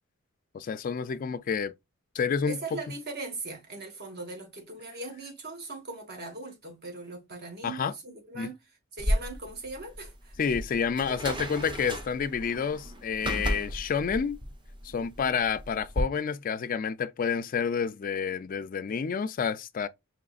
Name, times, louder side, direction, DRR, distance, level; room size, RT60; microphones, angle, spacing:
voice 1, 0.5-1.7 2.1-2.6 7.6-7.9 8.3-8.5 10.4-14.4 14.8-19.9, left 6 dB, 40° left, 0.3 m, -29 dB
voice 2, 2.5-8.6 8.9-10.4 14.9-15.3, right 3 dB, 50° right, 1.5 m, -40 dB
sound 1, 9.0-16.0, equal, 25° right, 0.8 m, -34 dB
5.0 x 3.0 x 2.4 m
head